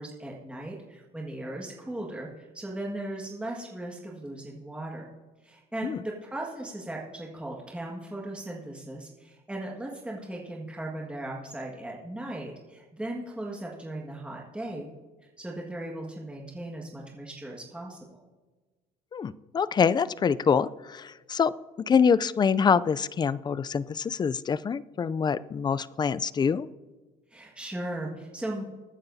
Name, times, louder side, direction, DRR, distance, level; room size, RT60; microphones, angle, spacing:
voice 1, 0.0-5.1 5.4-14.9 15.4-18.2 27.3-28.6, right 1 dB, 5° right, -2 dB, 1.7 m, -37 dB
voice 2, 19.1-21.5 21.9-26.7, left 6 dB, 25° left, 17 dB, 0.4 m, -25 dB
22.0 x 9.5 x 2.7 m, 1.3 s
cardioid pair, 110°, 17 cm